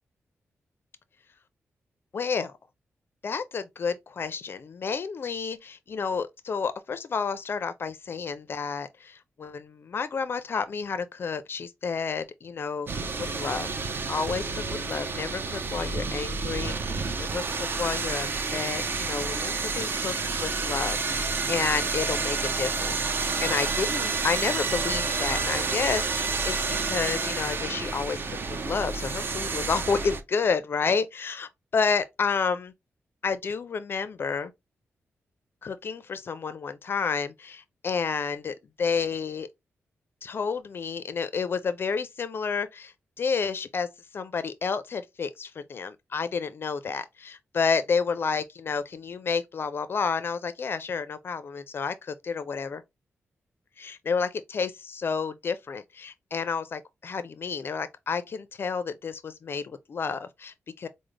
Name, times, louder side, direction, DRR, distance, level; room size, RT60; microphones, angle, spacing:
voice 1, 2.1-2.5 3.2-13.7 14.1-17.4 17.8-23.0 23.4-32.7 33.2-34.5 35.6-39.5 40.2-43.9 44.1-52.8 53.8-60.9, left 5 dB, 50° left, 0.4 m, -30 dB
sound 1, 12.9-30.2, right 4 dB, 50° right, 0.6 m, -29 dB
4.9 x 2.0 x 3.1 m
wide cardioid pair, 105°, 5 cm